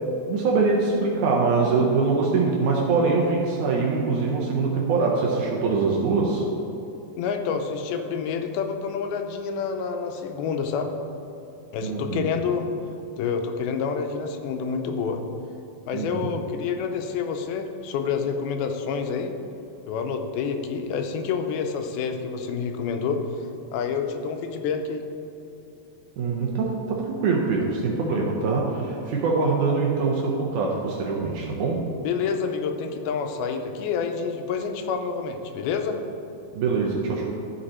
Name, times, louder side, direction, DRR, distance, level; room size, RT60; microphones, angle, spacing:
voice 1, 0.3-6.4 11.8-12.2 15.9-16.3 26.2-31.8 36.5-37.3, right 4 dB, 75° right, -2 dB, 1.9 m, -23 dB
voice 2, 7.2-10.9 11.7-12.7 13.2-15.2 15.9-19.3 19.9-25.1 32.0-36.0, left 6 dB, 85° left, 5 dB, 2.5 m, -28 dB
13.0 x 5.3 x 4.2 m, 2.8 s
omnidirectional pair, 4.2 m